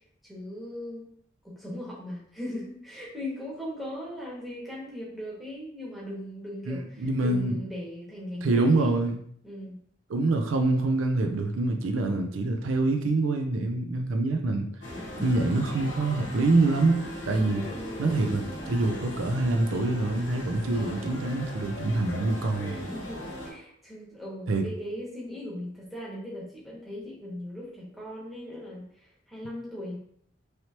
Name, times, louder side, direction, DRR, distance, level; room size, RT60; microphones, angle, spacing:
voice 1, 0.2-1.1 1.4-9.0 9.4-9.8 17.7-18.2 22.8-30.0, left 1 dB, ahead, -6 dB, 1.0 m, -39 dB
voice 2, 6.7-7.6 8.4-9.2 10.1-14.7 15.2-17.0 17.3-17.7 18.0-22.8 24.5-24.7, right 2 dB, 85° right, 5 dB, 0.5 m, -25 dB
sound 1, 14.8-23.5, left 1 dB, 70° left, 0.9 m, -38 dB
3.2 x 2.9 x 2.8 m, 0.64 s
head